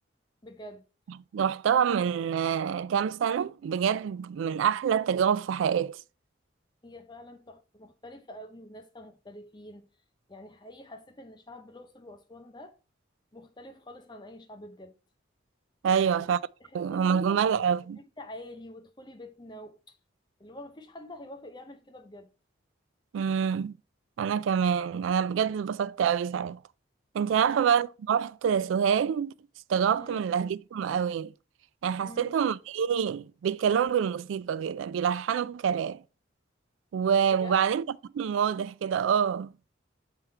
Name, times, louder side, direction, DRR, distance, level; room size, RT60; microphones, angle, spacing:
voice 1, 0.4-0.8 6.8-9.9 10.3-12.8 13.3-14.9 15.8-16.3 16.6-17.7 17.9-20.0 20.4-22.3 27.2-27.6 30.0-30.2 32.0-32.3 37.3-37.6, left 1 dB, 20° left, 0.6 m, -46 dB
voice 2, 1.3-6.0 15.8-16.4 16.7-18.0 23.1-23.7 24.2-26.6 27.1-29.3 29.7-31.3 31.8-36.0 36.9-37.8 38.1-39.5, right 7 dB, 80° right, 0.3 m, -26 dB
7.1 x 3.5 x 4.4 m
head